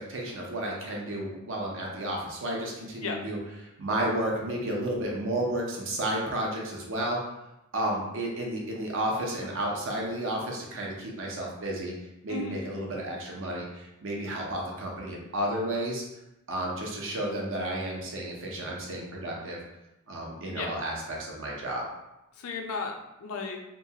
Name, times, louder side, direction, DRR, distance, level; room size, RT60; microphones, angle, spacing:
voice 1, 0.0-3.4 3.8-7.2 7.7-11.9 12.2-16.0 16.5-19.6 20.1-21.8, right 1 dB, 60° right, -1 dB, 0.7 m, -32 dB
voice 2, 12.3-12.6 20.5-20.7 22.4-23.6, left 5 dB, 80° left, 3 dB, 0.5 m, -35 dB
2.9 x 2.3 x 2.8 m, 0.91 s
head